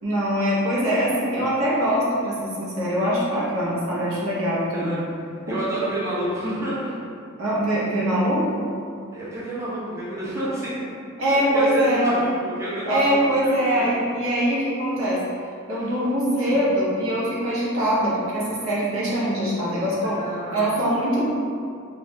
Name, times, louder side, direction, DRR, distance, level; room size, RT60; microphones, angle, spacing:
voice 1, 0.0-4.9 5.5-5.6 7.4-8.7 11.2-12.1 12.9-15.2 15.7-20.2 20.5-21.3, equal, 75° right, -7 dB, 0.8 m, -23 dB
voice 2, 4.7-5.1 5.5-6.9 9.1-10.7 11.2-13.1 13.4-13.9 15.7-15.9 16.4-16.6 20.0-20.8, right 1 dB, 15° right, -10 dB, 0.6 m, -29 dB
3.1 x 2.3 x 2.6 m, 2.4 s
head